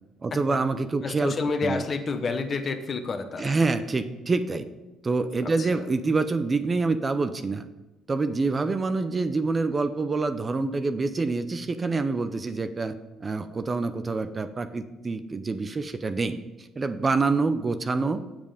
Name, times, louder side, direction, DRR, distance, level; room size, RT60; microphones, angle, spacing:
voice 1, 0.2-1.3 1.6-1.8 3.4-4.7 5.0-7.7 8.1-12.9 13.2-16.4 16.8-18.2, right 3 dB, 25° right, 10 dB, 0.6 m, -26 dB
voice 2, 1.0-3.6 5.4-5.7, left 4 dB, 40° left, 7 dB, 1.0 m, -29 dB
7.5 x 7.4 x 5.1 m, 1.1 s
cardioid pair, 105°, 0 cm